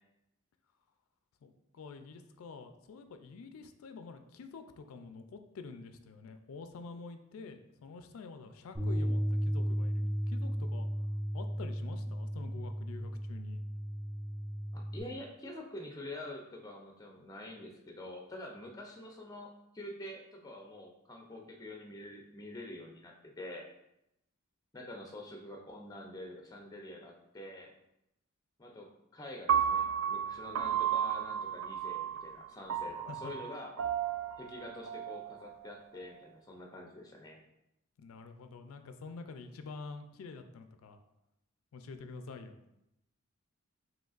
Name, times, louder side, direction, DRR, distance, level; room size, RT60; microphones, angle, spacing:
voice 1, 1.4-10.9 11.3-13.6 33.1-33.3 38.0-41.0 41.7-42.6, left 4 dB, 85° left, 8 dB, 0.4 m, -48 dB
Bass guitar, 8.7-15.0, equal, 10° right, 1.5 m, -34 dB
voice 2, 14.7-23.7 24.7-27.7 28.6-33.7 34.4-37.4, left 1 dB, 20° left, 1 dB, 0.5 m, -46 dB
Piano, 29.5-35.7, right 9 dB, 65° right, 0.3 m, -33 dB
5.1 x 3.1 x 2.4 m, 0.85 s
head